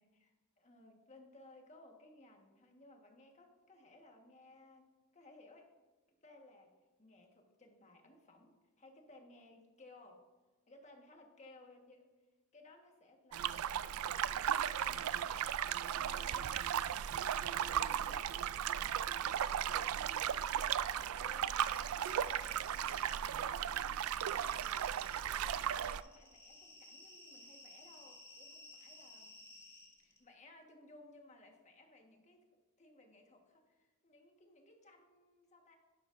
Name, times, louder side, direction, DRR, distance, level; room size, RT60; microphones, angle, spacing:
voice 1, 0.6-5.7 6.2-6.7 7.0-10.2 10.7-12.1 12.5-13.9 14.3-15.2 15.8-17.0 17.3-18.3 18.8-20.3 20.9-24.8 25.2-29.4 30.0-32.4 32.8-35.8, left 2 dB, 35° left, 2 dB, 1.4 m, -60 dB
sound 1, 13.3-26.0, right 9 dB, 75° right, 0.3 m, -36 dB
sound 2, 21.6-23.3 23.5-30.2, left 1 dB, 15° left, 1.9 m, -57 dB
11.0 x 11.0 x 2.6 m, 1.2 s
head